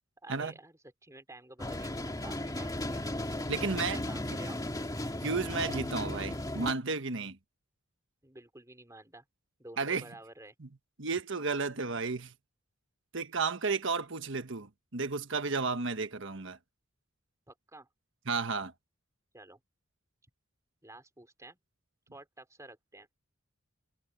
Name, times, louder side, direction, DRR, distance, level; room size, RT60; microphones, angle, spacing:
voice 1, 0.2-3.1 3.5-4.6 6.0-6.2 8.2-9.2 9.6-10.5 17.5-17.9 19.3-19.6 20.8-21.6 22.1-23.1, right 2 dB, 15° right, 5.1 m, -51 dB
sound 1, 1.6-6.7, left 1 dB, 20° left, 2.3 m, -35 dB
voice 2, 3.5-4.0 5.2-7.4 9.8-10.0 10.6-10.7 11.0-12.3 13.1-16.6 18.3-18.7, right 4 dB, 60° right, 1.3 m, -33 dB
head